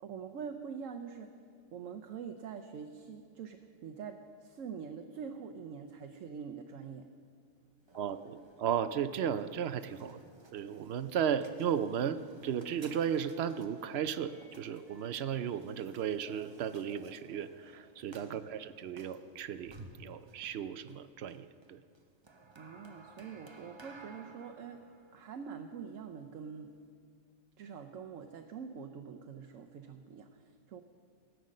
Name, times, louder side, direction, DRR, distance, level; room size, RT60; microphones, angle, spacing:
voice 1, 0.0-1.4 1.7-7.1 18.1-18.5 22.6-24.8 25.1-26.7 27.6-30.8, right 6 dB, 90° right, 5 dB, 1.1 m, -45 dB
sound 1, 7.8-26.9, right 3 dB, 25° right, 0.7 m, -57 dB
voice 2, 8.0-10.2 10.5-21.8, right 8 dB, 65° right, 12 dB, 0.8 m, -35 dB
17.0 x 9.2 x 6.4 m, 2.2 s
omnidirectional pair, 1.3 m